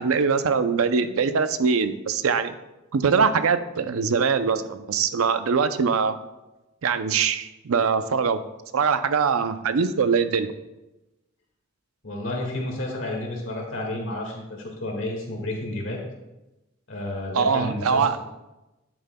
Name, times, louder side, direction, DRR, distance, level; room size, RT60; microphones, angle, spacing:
voice 1, 0.0-2.5 2.9-6.1 6.8-8.4 8.7-10.5 17.3-18.2, right 5 dB, 85° right, 10 dB, 0.5 m, -22 dB
voice 2, 12.0-16.0 16.9-18.2, left 1 dB, 65° left, 0 dB, 1.9 m, -31 dB
10.5 x 7.6 x 2.2 m, 1.0 s
head